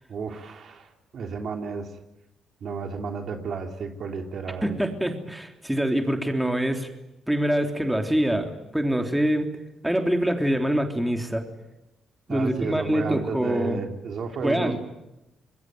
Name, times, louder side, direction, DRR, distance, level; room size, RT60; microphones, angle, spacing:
voice 1, 0.1-1.9 2.6-4.8 12.3-14.8, right 5 dB, 60° right, 4 dB, 3.3 m, -32 dB
voice 2, 4.6-6.9 7.3-9.5 9.8-11.4 12.3-13.8 14.4-14.8, right 1 dB, 5° right, 4 dB, 3.4 m, -25 dB
26.0 x 22.0 x 9.3 m, 0.92 s
cardioid pair, 90°, 0 cm